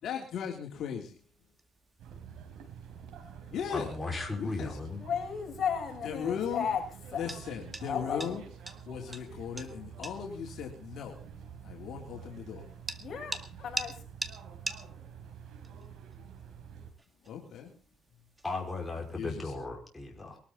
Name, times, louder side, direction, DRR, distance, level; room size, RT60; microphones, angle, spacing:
voice 1, 0.0-1.3 3.5-4.0 4.4-4.8 6.0-6.7 7.1-8.5 8.8-11.2 11.6-12.9 17.2-17.8 19.1-19.5, left 7 dB, 70° left, 3.5 m, -37 dB
sound 1, 1.0-19.3, right 2 dB, 15° right, 2.0 m, -47 dB
sound 2, 2.0-16.9, right 7 dB, 85° right, 4.1 m, -48 dB
voice 2, 3.7-5.1 18.4-20.4, left 3 dB, 15° left, 5.3 m, -36 dB
voice 3, 5.0-6.8 7.1-7.2 7.9-8.4 13.0-14.0, left 7 dB, 50° left, 6.7 m, -34 dB
22.5 x 13.0 x 4.1 m
cardioid pair, 90°, 0 cm